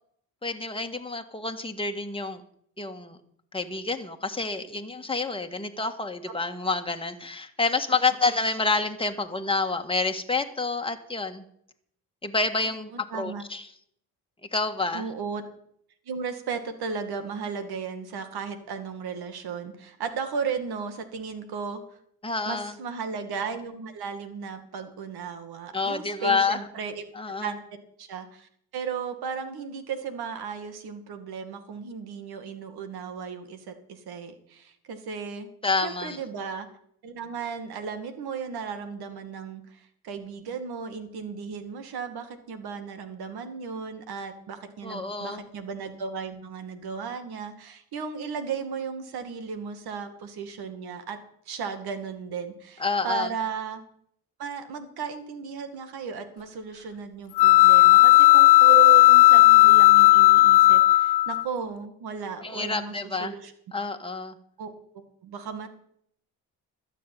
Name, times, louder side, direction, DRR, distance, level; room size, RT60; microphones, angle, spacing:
voice 1, 0.4-2.4 2.8-3.2 3.5-11.4 12.2-13.6 14.5-15.1 22.2-22.7 25.7-26.6 27.1-27.5 35.6-36.2 44.8-45.4 52.8-53.3 62.4-63.3 63.7-64.4, left 3 dB, 15° left, 5 dB, 1.8 m, -28 dB
voice 2, 12.6-13.4 14.9-15.4 16.1-21.8 22.5-27.1 27.4-27.6 28.0-35.5 35.8-36.7 37.0-51.2 51.5-53.8 54.4-62.9 63.2-63.5 64.6-65.7, right 6 dB, 65° right, 9 dB, 2.2 m, -35 dB
sound 1, 57.4-61.4, left 18 dB, 70° left, 0.6 m, -14 dB
12.5 x 6.8 x 9.2 m, 0.68 s
supercardioid pair, 60°, 40 cm